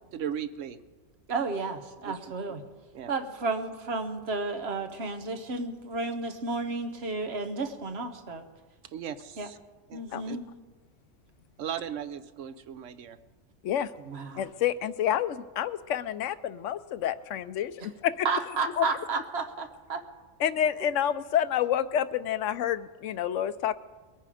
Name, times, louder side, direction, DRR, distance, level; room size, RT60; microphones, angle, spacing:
voice 1, 0.1-0.8 2.0-2.2 2.9-3.1 8.9-9.6 9.9-10.4 11.6-13.2, right 9 dB, 80° right, 10 dB, 1.0 m, -37 dB
voice 2, 1.3-2.6 3.1-8.4 9.4-9.5 9.9-10.4 14.1-14.4 17.8-17.9 18.2-20.0, right 3 dB, 60° right, 7 dB, 1.3 m, -32 dB
voice 3, 14.4-18.3 18.8-18.9 20.4-23.7, left 10 dB, 85° left, 14 dB, 1.0 m, -28 dB
21.5 x 9.1 x 4.9 m, 1.3 s
omnidirectional pair, 1.3 m